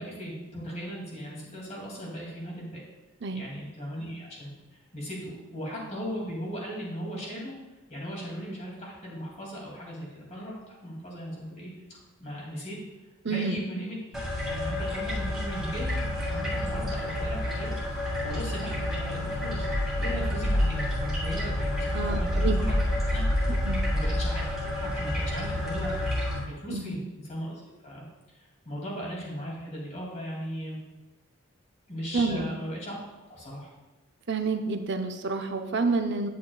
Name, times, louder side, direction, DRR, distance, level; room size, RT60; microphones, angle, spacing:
voice 1, 0.0-2.8 3.3-7.5 7.9-11.7 12.2-12.8 13.3-14.0 14.5-17.8 18.2-19.7 20.0-22.7 23.0-23.2 23.9-25.9 26.5-28.1 28.3-30.8 31.9-33.0 33.3-33.7, equal, 35° left, -3 dB, 2.7 m, -38 dB
voice 2, 13.2-13.6 21.9-22.6 23.6-23.8 26.7-27.0 32.1-32.5 34.3-36.3, right 4 dB, 55° right, 6 dB, 0.6 m, -29 dB
sound 1, 14.1-26.4, left 1 dB, ahead, 2.4 m, -28 dB
10.0 x 8.3 x 2.4 m, 1.1 s
head